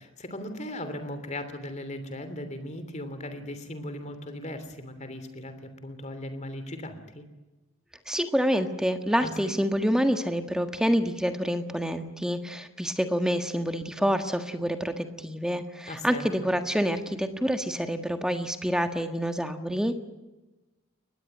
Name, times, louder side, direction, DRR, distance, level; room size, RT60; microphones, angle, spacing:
voice 1, 0.0-7.2 9.2-9.5 15.8-16.3, left 1 dB, 35° left, 9 dB, 3.0 m, -38 dB
voice 2, 8.1-20.0, equal, 5° right, 7 dB, 1.5 m, -27 dB
23.0 x 19.5 x 9.3 m, 1.1 s
head